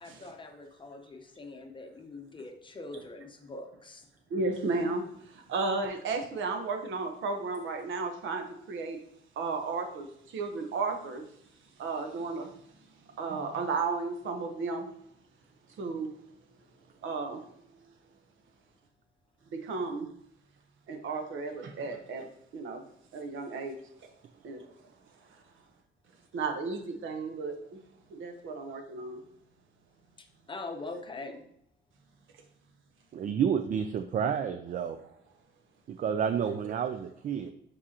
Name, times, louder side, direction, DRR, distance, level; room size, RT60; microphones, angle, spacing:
voice 1, 0.0-4.1 30.2-31.4, left 3 dB, 25° left, 4 dB, 0.7 m, -43 dB
voice 2, 4.3-9.0 9.4-11.3 11.8-12.5 13.2-14.9 15.8-16.1 17.0-17.4 19.5-20.1 20.9-22.8 23.1-23.8 24.4-24.7 26.3-27.8 28.1-29.2, right 3 dB, 70° right, 4 dB, 1.0 m, -34 dB
voice 3, 33.1-35.0 35.9-37.5, right 7 dB, 40° right, 9 dB, 0.4 m, -30 dB
7.2 x 4.8 x 2.9 m, 0.72 s
cardioid pair, 135°, 21 cm